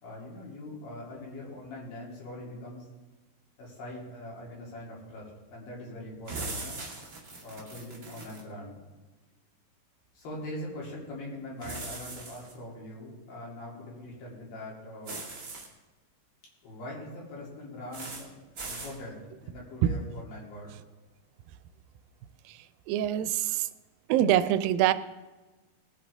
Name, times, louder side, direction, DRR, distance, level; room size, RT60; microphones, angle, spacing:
voice 1, 0.0-2.8 3.6-6.8 7.4-8.7 10.1-15.2 16.6-18.3 18.7-20.8, left 1 dB, 85° left, -4 dB, 4.8 m, -42 dB
sound 1, 6.3-8.4 11.6-12.5 15.0-15.7 17.9-18.2 18.6-18.9, right 3 dB, 30° right, 2.2 m, -40 dB
voice 2, 22.5-23.7 24.1-24.9, right 12 dB, 90° right, 13 dB, 2.3 m, -25 dB
19.5 x 9.0 x 3.5 m, 1.2 s
omnidirectional pair, 4.0 m